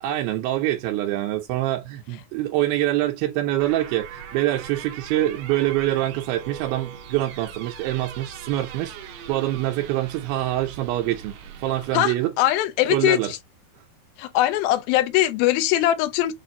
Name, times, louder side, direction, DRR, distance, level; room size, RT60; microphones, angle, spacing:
voice 1, 0.0-11.3 11.6-12.3 12.9-13.3, right 15 dB, 90° right, 2.5 m, -25 dB
sound 1, 3.6-12.0, right 8 dB, 70° right, 2.3 m, -40 dB
voice 2, 11.9-13.4 14.2-16.3, left 14 dB, 90° left, 2.5 m, -21 dB
6.8 x 2.5 x 2.7 m
omnidirectional pair, 4.1 m